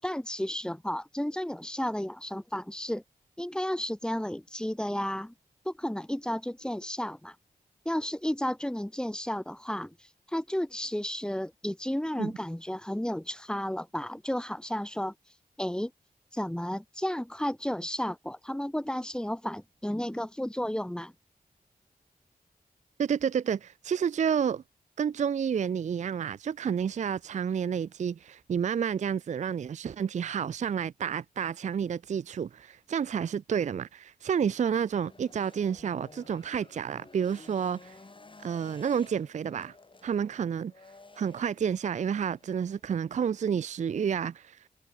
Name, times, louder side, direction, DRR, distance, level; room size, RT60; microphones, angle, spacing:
voice 1, 0.0-3.0 3.4-5.3 5.6-7.3 7.8-9.9 10.3-15.1 15.6-15.9 16.3-21.1, left 1 dB, 5° left, 0.9 m, -32 dB
voice 2, 23.0-24.6 25.0-38.0 38.4-39.7 40.0-40.7 41.2-44.7, right 7 dB, 50° right, 0.4 m, -30 dB
sound 1, 34.7-42.8, left 3 dB, 35° left, 3.0 m, -54 dB
cardioid pair, 70°, 15 cm